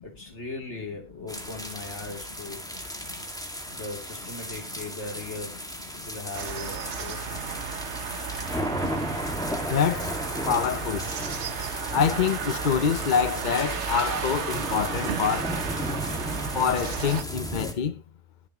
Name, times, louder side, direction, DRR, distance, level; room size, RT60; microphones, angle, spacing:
voice 1, 0.0-2.6 3.7-5.7 5.9-7.5, left 3 dB, 75° left, 3.5 m, -39 dB
sound 1, 1.3-17.7, equal, 5° left, 1.9 m, -35 dB
sound 2, 6.3-17.2, right 7 dB, 75° right, 1.2 m, -34 dB
voice 2, 9.7-10.1 10.5-11.0 11.9-15.5 16.5-17.9, left 7 dB, 50° left, 0.8 m, -25 dB
21.5 x 7.2 x 3.0 m
omnidirectional pair, 1.2 m